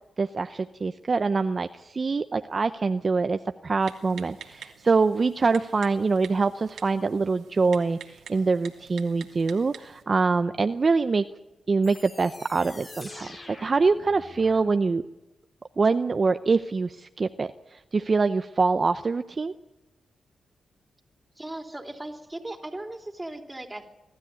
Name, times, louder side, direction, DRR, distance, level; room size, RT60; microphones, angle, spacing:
voice 1, 0.2-11.2 11.7-13.3 13.6-15.0 15.8-19.5, right 4 dB, 45° right, 9 dB, 0.6 m, -24 dB
Typing, 3.8-10.0, right 8 dB, 90° right, 1.8 m, -47 dB
sound 1, 11.8-14.7, left 2 dB, 40° left, 6.2 m, -45 dB
voice 2, 21.3-23.9, right 1 dB, 15° right, 3 dB, 3.3 m, -37 dB
22.5 x 13.0 x 9.5 m, 1.0 s
cardioid pair, 60°, 0 cm